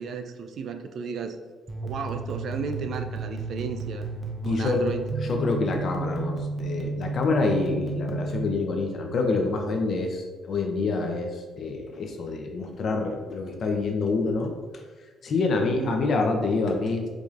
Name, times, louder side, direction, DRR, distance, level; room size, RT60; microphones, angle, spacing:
voice 1, 0.0-1.4 1.8-4.1 4.4-5.1 15.6-16.0, right 5 dB, 65° right, 6 dB, 0.3 m, -33 dB
sound 1, 1.7-8.5, right 3 dB, 20° right, 0.7 m, -32 dB
voice 2, 4.4-4.8 5.2-14.5 15.2-17.1, left 3 dB, 60° left, 3 dB, 0.6 m, -27 dB
4.7 x 2.6 x 2.4 m, 1.4 s
cardioid pair, 90°, 0 cm